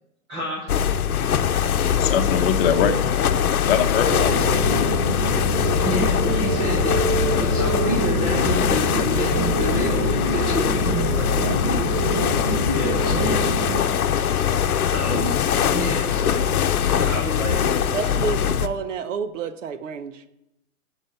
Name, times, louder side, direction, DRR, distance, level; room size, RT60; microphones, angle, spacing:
voice 1, 0.3-0.7 4.1-4.3 5.8-11.4 12.7-13.4 14.9-15.4 15.7-17.9, equal, 5° right, -5 dB, 0.4 m, -29 dB
sound 1, 0.7-18.7, left 8 dB, 85° left, 0.8 m, -22 dB
voice 2, 1.9-3.2 3.6-4.6, left 7 dB, 45° left, 7 dB, 1.0 m, -22 dB
sound 2, 4.1-13.8, right 3 dB, 30° right, 1.1 m, -26 dB
voice 3, 17.9-20.2, right 6 dB, 60° right, 11 dB, 0.9 m, -29 dB
11.5 x 5.1 x 5.8 m, 0.89 s
hypercardioid pair, 145°, 43 cm